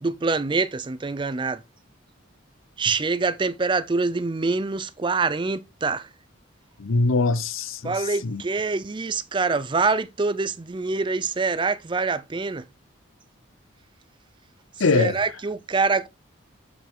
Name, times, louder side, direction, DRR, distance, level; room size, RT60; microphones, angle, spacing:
voice 1, 0.0-1.6 2.8-6.1 7.8-12.6 14.9-16.1, right 4 dB, 25° right, 0.4 m, -25 dB
voice 2, 6.8-8.4 14.8-15.2, left 3 dB, 85° left, 0.7 m, -23 dB
8.0 x 4.7 x 3.7 m
head